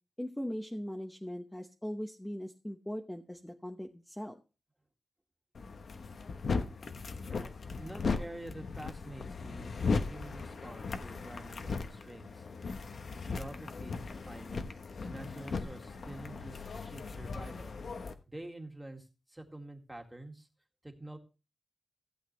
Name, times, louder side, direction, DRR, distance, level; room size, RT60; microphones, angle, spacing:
voice 1, 0.2-4.4, equal, 10° left, 2 dB, 1.0 m, -40 dB
sound 1, 5.5-18.1, left 4 dB, 65° left, 1.1 m, -37 dB
voice 2, 7.2-12.8 13.1-14.6 15.0-20.5 20.8-21.2, right 1 dB, 10° right, 3 dB, 2.0 m, -48 dB
15.5 x 8.3 x 3.2 m, 0.31 s
wide cardioid pair, 115°, 0 cm